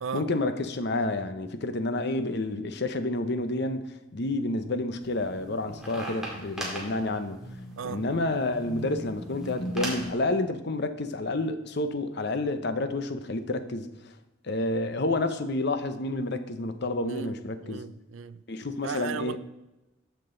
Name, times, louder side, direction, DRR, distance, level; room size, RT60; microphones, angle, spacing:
voice 1, 0.1-7.4 7.8-13.9 14.4-17.8 18.5-19.4, left 2 dB, 55° left, 0.8 m, -29 dB
sound 1, 5.0-10.1, right 1 dB, ahead, 2.1 m, -38 dB
voice 2, 17.6-18.4 18.8-19.4, right 6 dB, 70° right, 0.4 m, -35 dB
13.5 x 6.1 x 3.9 m
head